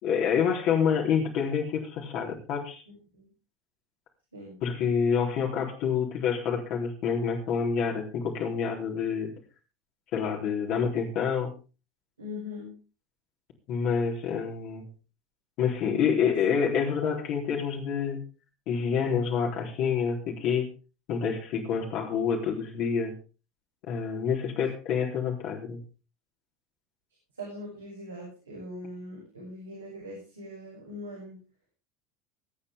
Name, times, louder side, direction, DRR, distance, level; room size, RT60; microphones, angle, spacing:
voice 1, 0.0-2.8 4.6-9.3 10.1-11.5 13.7-14.9 15.6-18.3 18.7-20.7 21.1-23.2 23.9-25.8, left 6 dB, 55° left, 0 dB, 3.9 m, -27 dB
voice 2, 12.2-12.8 27.4-31.4, left 1 dB, 90° right, -6 dB, 7.6 m, -41 dB
24.0 x 8.8 x 3.7 m, 0.33 s
figure-of-eight pair, 75°, 0 cm